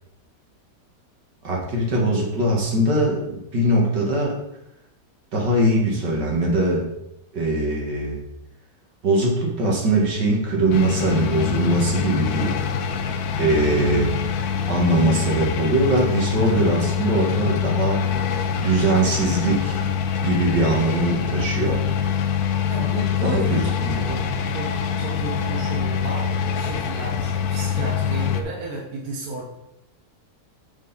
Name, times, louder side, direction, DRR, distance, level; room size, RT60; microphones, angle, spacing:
voice 1, 1.4-4.4 5.3-6.8 7.3-8.2 9.0-12.6 13.4-18.0 18.5-19.8 20.2-21.8 23.2-24.2, right 2 dB, 75° right, -2 dB, 2.3 m, -21 dB
sound 1, 10.7-28.4, left 7 dB, 65° left, 1.1 m, -24 dB
voice 2, 22.7-23.8 24.5-29.5, right 2 dB, 60° right, -2 dB, 1.8 m, -32 dB
7.3 x 6.5 x 4.0 m, 0.83 s
omnidirectional pair, 1.9 m